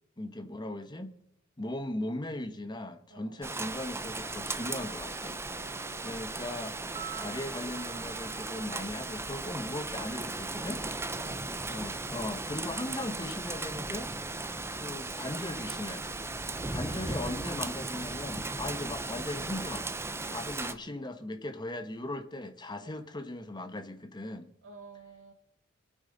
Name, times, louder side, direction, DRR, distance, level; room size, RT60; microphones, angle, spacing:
voice 1, 0.2-1.1 1.6-5.4 6.0-10.8 11.7-14.1 14.8-16.2 16.7-19.9 20.3-24.5, left 1 dB, 20° left, 1.2 m, -38 dB
Rain, 3.4-20.7, right 2 dB, 15° right, 0.6 m, -37 dB
voice 2, 5.5-6.4 6.9-7.2 11.2-11.4 14.3-14.6 16.5-17.0 20.2-20.5 22.8-23.0 24.6-25.3, right 3 dB, 80° right, 1.7 m, -53 dB
sound 1, 7.0-11.0 11.2-11.3, right 10 dB, 35° right, 3.1 m, -49 dB
26.0 x 9.0 x 4.0 m
head